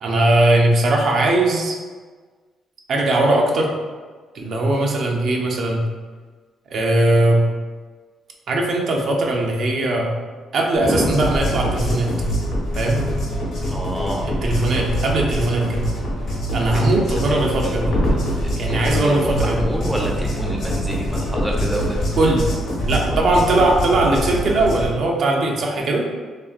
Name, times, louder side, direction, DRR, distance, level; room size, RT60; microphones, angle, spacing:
voice 1, 0.0-1.7 2.9-3.7 4.3-5.8 6.7-7.4 8.5-10.2 10.5-12.1 12.7-13.0 14.4-15.9 16.5-17.9 18.6-19.6 22.2-22.5 22.9-26.1, right 2 dB, 60° right, 0 dB, 0.4 m, -19 dB
sound 1, 10.8-24.9, equal, 85° left, 0.9 m, -24 dB
voice 2, 13.7-14.3 16.6-17.8 18.1-22.0 25.7-25.8, equal, 5° right, -1 dB, 0.4 m, -29 dB
2.8 x 2.4 x 2.4 m, 1.4 s
cardioid pair, 90°, 0 cm